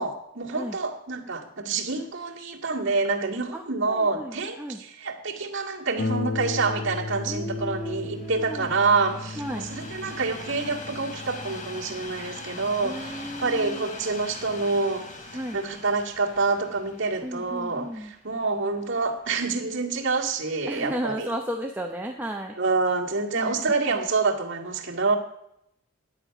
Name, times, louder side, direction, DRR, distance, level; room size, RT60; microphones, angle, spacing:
voice 1, 0.0-15.0 15.5-21.3 22.6-25.2, right 4 dB, 60° right, -2 dB, 2.1 m, -27 dB
voice 2, 3.5-4.8 7.2-8.7 9.4-9.7 12.8-13.9 15.3-15.6 17.2-18.1 20.6-22.6 23.3-23.7, equal, 10° right, 1 dB, 0.8 m, -34 dB
Harp, 6.0-15.2 16.0-16.1 16.6-16.7, left 3 dB, 55° left, 0.7 m, -36 dB
Train, 6.3-19.4 20.1-20.2, left 3 dB, 40° left, 1.4 m, -43 dB
11.5 x 9.5 x 5.9 m, 0.78 s
head